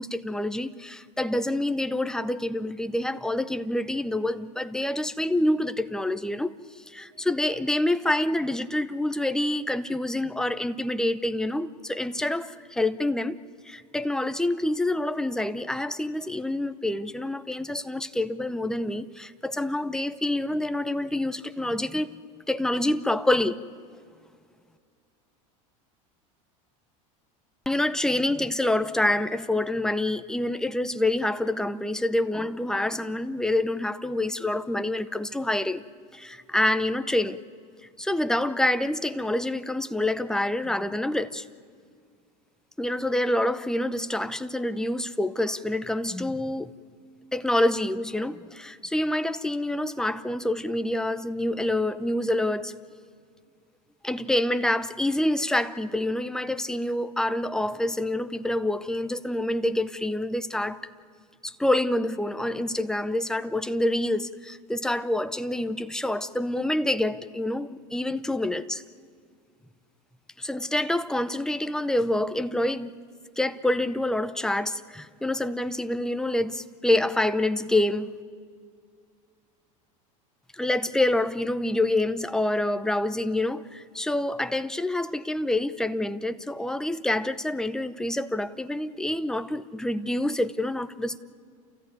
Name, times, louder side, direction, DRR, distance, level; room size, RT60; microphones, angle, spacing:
voice 1, 0.0-6.5 6.9-13.4 13.6-22.1 22.5-23.6 27.7-35.8 36.1-37.4 38.0-41.5 42.8-46.7 47.3-52.7 54.0-60.8 61.4-68.8 70.4-73.0 73.4-78.1 80.5-91.2, left 1 dB, 5° left, 0.7 m, -27 dB
30.0 x 14.0 x 9.4 m
supercardioid pair, 120°, 18 cm